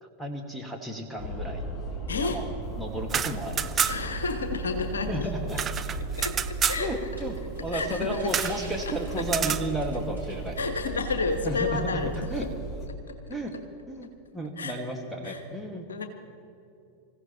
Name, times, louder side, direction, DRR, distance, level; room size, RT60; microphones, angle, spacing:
voice 1, 0.0-1.7 2.2-2.5 2.8-3.9 5.1-5.6 6.8-10.6 11.4-11.9 12.3-12.5 13.3-13.5 13.9-14.1 14.3-15.8, right 1 dB, ahead, -1 dB, 1.8 m, -33 dB
sound 1, 1.2-12.9, right 2 dB, 25° left, 1.6 m, -36 dB
voice 2, 2.1-2.4 3.8-5.3 6.2-6.9 7.7-8.4 8.9-9.0 10.6-12.5 12.9-13.2 14.6-14.7 15.2-15.4 15.9-16.1, left 4 dB, 70° left, 7 dB, 1.2 m, -31 dB
sound 2, 3.0-4.2 4.5-4.6 4.8-6.8 8.3-8.6 9.2-9.7, right 8 dB, 25° right, 0.5 m, -29 dB
sound 3, 7.1-11.1 11.4-11.5 12.1-12.2, right 1 dB, 85° right, 4.2 m, -48 dB
26.0 x 15.5 x 3.0 m, 2.7 s
figure-of-eight pair, 90°, 0 cm